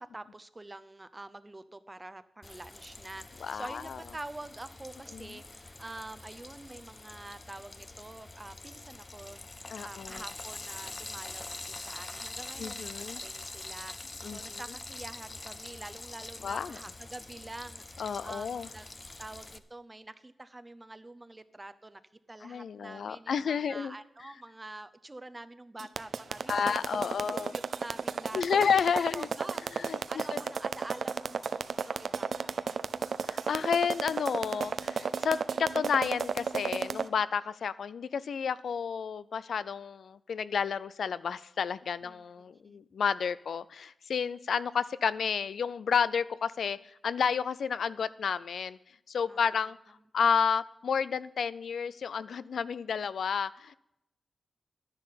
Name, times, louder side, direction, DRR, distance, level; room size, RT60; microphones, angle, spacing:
voice 1, 0.0-18.9 19.2-22.0 22.3-28.8 29.1-32.9 42.0-42.8 49.3-49.7, right 2 dB, 20° right, 12 dB, 0.6 m, -47 dB
Frying (food), 2.4-19.6, left 2 dB, 25° left, 0.6 m, -45 dB
voice 2, 3.4-4.0 5.1-5.3 9.7-10.2 12.6-13.2 14.2-14.4 16.4-16.8 18.0-18.7 22.4-23.9 26.5-27.5 28.3-29.3 29.7-30.4 33.2-46.8 47.0-48.8 49.1-49.8 50.1-53.7, left 6 dB, 85° left, 17 dB, 0.4 m, -31 dB
sound 1, 25.8-37.1, right 6 dB, 65° right, 0.5 m, -32 dB
12.0 x 10.5 x 5.7 m, 0.82 s
wide cardioid pair, 145°, 0 cm